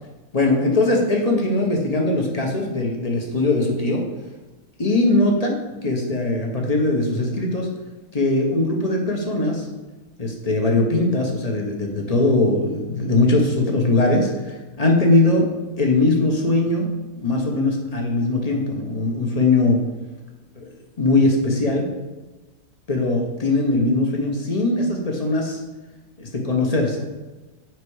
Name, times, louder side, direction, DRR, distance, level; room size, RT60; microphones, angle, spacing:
voice 1, 0.3-4.0 4.8-5.5 5.8-7.7 8.1-9.7 10.2-15.5 15.8-16.9 17.2-19.8 20.6-20.7 21.0-21.9 22.9-25.6 26.2-27.0, left 2 dB, 25° left, 1 dB, 1.0 m, -20 dB
7.8 x 5.0 x 4.9 m, 1.2 s
omnidirectional pair, 2.0 m